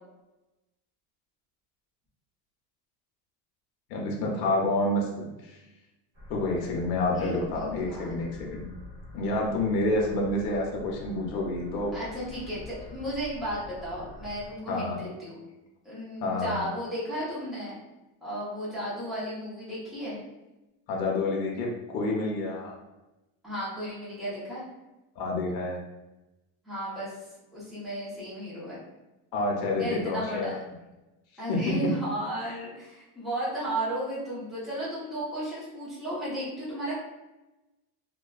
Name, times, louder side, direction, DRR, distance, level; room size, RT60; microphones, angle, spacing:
voice 1, 3.9-5.6 6.3-8.7 9.1-11.9 14.7-15.0 16.2-16.6 20.9-21.7 21.9-22.7 25.2-25.8 29.3-30.6 31.5-31.8, left 2 dB, 90° left, -1 dB, 0.7 m, -28 dB
sound 1, 6.1-14.5, left 2 dB, 25° right, 0.9 m, -46 dB
voice 2, 7.1-8.4 11.9-15.4 15.8-17.7 18.2-20.2 23.4-24.6 26.6-27.2 27.5-28.9 29.8-30.6 31.4-36.9, right 1 dB, ahead, -10 dB, 0.6 m, -34 dB
2.4 x 2.2 x 2.3 m, 1.0 s
cardioid pair, 155°, 48 cm